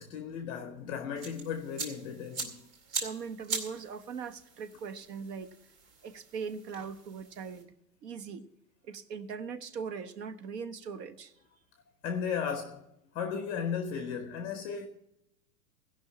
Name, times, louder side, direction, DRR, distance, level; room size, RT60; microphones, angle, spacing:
voice 1, 0.0-2.6 12.0-12.8 13.1-14.9, left 7 dB, 10° left, 0.5 m, -35 dB
sound 1, 1.2-7.6, right 4 dB, 35° right, 2.6 m, -41 dB
voice 2, 2.9-5.5 6.0-7.7 8.0-8.4 8.8-11.3, right 6 dB, 80° right, 1.3 m, -40 dB
16.0 x 5.6 x 8.5 m
supercardioid pair, 165°, 48 cm